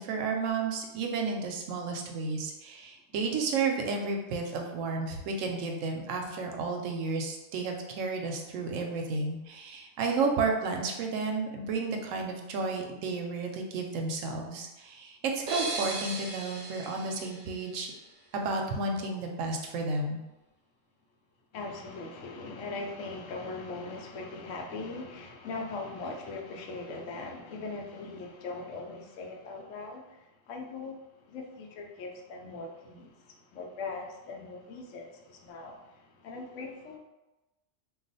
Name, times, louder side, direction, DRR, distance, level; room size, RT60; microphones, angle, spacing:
voice 1, 0.0-17.9 18.3-20.2, right 4 dB, 85° right, 2 dB, 1.0 m, -32 dB
sound 1, 15.5-18.2, right 3 dB, 55° right, 0.6 m, -38 dB
voice 2, 21.5-30.0 30.5-30.9 31.2-37.0, left 3 dB, 80° left, 1 dB, 0.9 m, -40 dB
2.3 x 2.3 x 3.9 m, 1.0 s
omnidirectional pair, 1.3 m